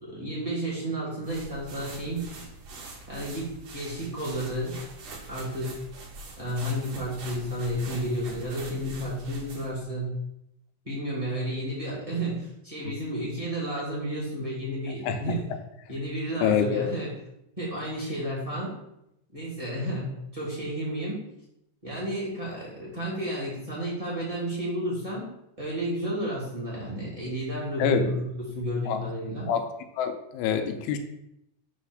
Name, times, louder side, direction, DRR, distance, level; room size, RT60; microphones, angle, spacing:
voice 1, 0.0-2.2 3.1-4.8 5.3-5.8 6.4-10.1 10.8-15.4 15.9-17.1 17.6-18.7 19.3-20.1 20.3-21.2 21.8-25.3 25.6-29.5, right 1 dB, 15° right, -6 dB, 1.0 m, -32 dB
sound 1, 1.2-9.8, right 2 dB, 55° right, 2.6 m, -43 dB
voice 2, 15.0-15.6 16.4-16.9 27.8-28.0 28.9-29.0 29.5-29.7 30.0-31.0, left 8 dB, 90° left, 7 dB, 3.2 m, -26 dB
8.3 x 3.3 x 6.3 m, 0.81 s
omnidirectional pair, 5.4 m